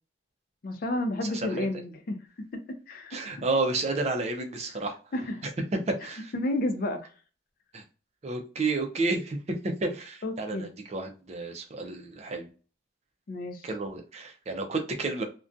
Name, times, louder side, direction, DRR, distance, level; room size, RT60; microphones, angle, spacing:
voice 1, 0.6-2.2 2.5-2.6 2.9-3.2 5.1-5.5 6.3-7.1 10.2-10.7 13.3-13.7, left 1 dB, 45° left, 6 dB, 0.4 m, -31 dB
voice 2, 1.2-1.7 3.1-5.0 5.9-6.3 7.7-7.8 8.2-9.4 9.8-12.5 13.6-15.2, right 3 dB, 35° right, 4 dB, 0.4 m, -31 dB
2.4 x 2.2 x 2.5 m, 0.36 s
head